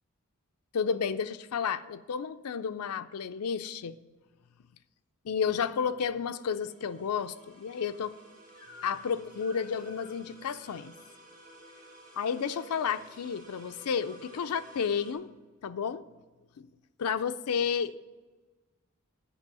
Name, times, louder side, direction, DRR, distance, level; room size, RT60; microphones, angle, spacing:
voice 1, 0.7-4.0 5.2-8.1 8.8-10.9 12.2-15.3 15.6-16.0 16.6-16.7 17.0-18.0, left 6 dB, 85° left, 11 dB, 0.5 m, -31 dB
sound 1, 6.1-15.1, right 1 dB, 50° right, 4.0 m, -53 dB
Crying sobbing / Screech, 8.6-9.1 9.4-10.9 11.7-12.4, left 2 dB, 45° left, 1.8 m, -54 dB
10.0 x 5.4 x 7.5 m, 1.3 s
head